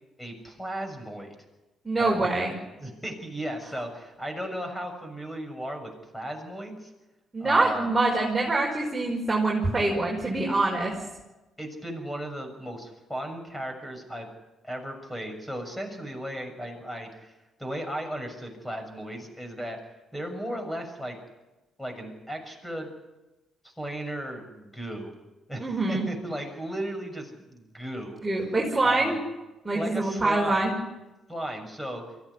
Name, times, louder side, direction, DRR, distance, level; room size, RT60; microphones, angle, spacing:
voice 1, 0.2-1.4 2.0-6.9 7.4-7.9 11.6-14.3 14.6-17.3 17.6-19.8 20.1-21.2 21.8-22.9 23.6-25.1 25.5-28.2 28.8-29.2 29.7-30.7 31.3-32.0, right 1 dB, 10° left, 5 dB, 6.9 m, -35 dB
voice 2, 1.8-2.5 7.3-11.0 25.6-26.1 28.2-29.2 29.6-30.7, right 2 dB, 15° right, -2 dB, 5.2 m, -25 dB
23.5 x 15.0 x 9.8 m, 1.1 s
cardioid pair, 90°, 0 cm